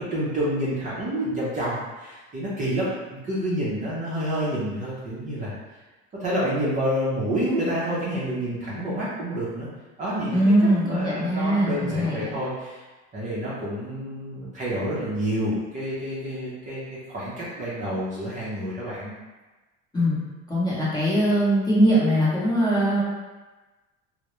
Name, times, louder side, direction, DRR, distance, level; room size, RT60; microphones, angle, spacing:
voice 1, 0.0-5.5 6.2-9.7 10.0-10.5 10.8-12.8 13.1-16.8 17.1-19.1, equal, 25° right, -8 dB, 0.5 m, -28 dB
voice 2, 10.3-12.3 19.9-20.2 20.5-23.0, equal, 15° left, -9 dB, 0.8 m, -21 dB
2.2 x 2.0 x 2.9 m, 1.2 s
cardioid pair, 130°, 29 cm